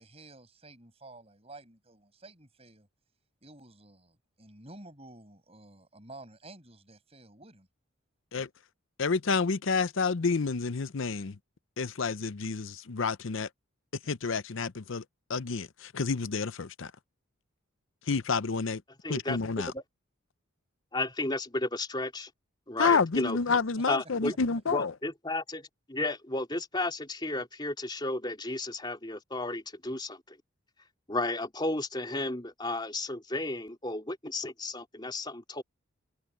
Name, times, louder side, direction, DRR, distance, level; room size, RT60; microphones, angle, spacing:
voice 1, 0.0-2.9 3.4-7.7 23.5-23.6, right 2 dB, 30° right, 6.2 m, -51 dB
voice 2, 9.0-11.4 11.8-13.5 14.1-15.0 15.3-16.9 18.1-18.8 19.1-19.7 22.8-24.9, left 4 dB, 65° left, 0.7 m, -29 dB
voice 3, 19.0-19.4 19.7-19.8 20.9-22.3 22.7-23.4 23.9-24.3 24.7-30.4 31.1-35.6, left 2 dB, 20° left, 3.8 m, -33 dB
head